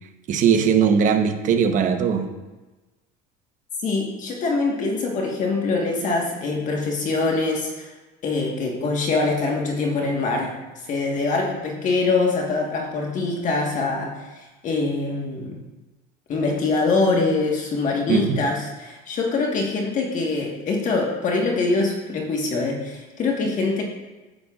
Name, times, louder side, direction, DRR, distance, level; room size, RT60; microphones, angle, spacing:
voice 1, 0.3-2.3 18.1-18.4, right 7 dB, 40° right, 5 dB, 1.0 m, -19 dB
voice 2, 3.8-7.9 8.2-15.6 16.3-23.8, left 3 dB, 40° left, 0 dB, 1.4 m, -24 dB
10.5 x 8.6 x 2.4 m, 1.2 s
supercardioid pair, 130°, 21 cm